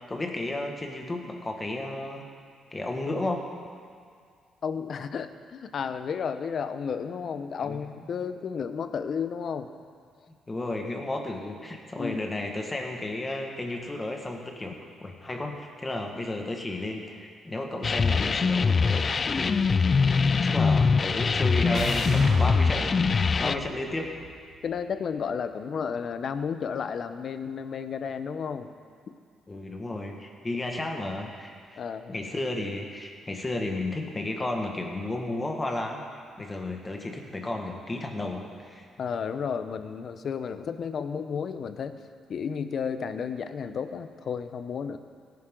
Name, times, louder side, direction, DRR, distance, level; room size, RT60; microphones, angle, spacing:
voice 1, 0.1-2.2 2.7-3.4 7.6-7.9 10.5-24.1 29.5-31.8 32.1-36.1 36.4-38.9, left 2 dB, 20° left, 2 dB, 1.7 m, -33 dB
voice 2, 4.6-9.7 12.0-12.2 23.4-23.7 24.6-28.7 31.8-32.1 39.0-42.0 42.3-45.0, left 6 dB, 55° left, 10 dB, 0.7 m, -32 dB
sound 1, 17.8-23.5, left 5 dB, 40° left, 0.3 m, -23 dB
sound 2, 20.7-24.8, right 3 dB, 70° right, 2.6 m, -38 dB
17.5 x 11.0 x 3.9 m, 2.1 s
cardioid pair, 90°, 0 cm